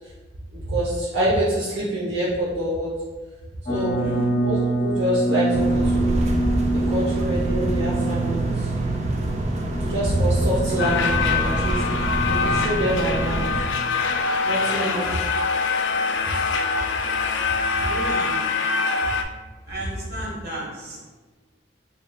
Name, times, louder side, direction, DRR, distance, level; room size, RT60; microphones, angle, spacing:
voice 1, 0.5-2.9 3.7-4.0 4.4-4.6 4.8-6.1 6.9-8.7 9.7-12.1 12.4-13.5 14.5-15.1, right 1 dB, 85° right, -7 dB, 0.9 m, -25 dB
sound 1, 3.7-14.6, right 2 dB, 35° left, 0.8 m, -27 dB
voice 2, 3.7-4.3 14.7-15.1 17.8-18.4 19.7-21.0, equal, 60° right, -4 dB, 1.3 m, -33 dB
sound 2, 5.5-13.6, right 1 dB, 40° right, 0.4 m, -26 dB
sound 3, 10.8-19.2, left 4 dB, 80° left, 0.4 m, -24 dB
4.0 x 3.6 x 2.3 m, 1.3 s
head